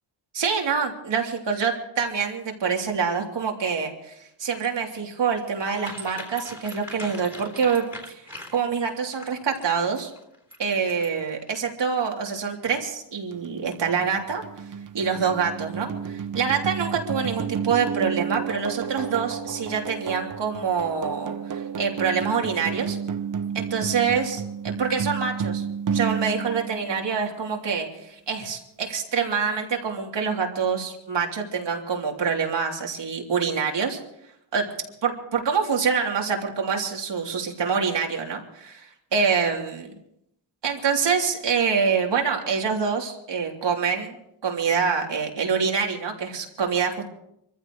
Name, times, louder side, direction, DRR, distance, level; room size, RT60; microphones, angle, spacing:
voice 1, 0.3-10.1 10.6-14.4 14.9-23.0 23.5-25.6 25.9-34.0 34.5-34.6 35.0-39.9 40.6-44.1 44.4-47.1, right 6 dB, 55° right, 1 dB, 3.3 m, -26 dB
sound 1, 4.5-11.3, left 1 dB, 5° right, 3.8 m, -41 dB
sound 2, 13.3-27.5, right 7 dB, 40° right, 0.9 m, -31 dB
25.0 x 15.5 x 3.2 m, 0.76 s
cardioid pair, 90°, 49 cm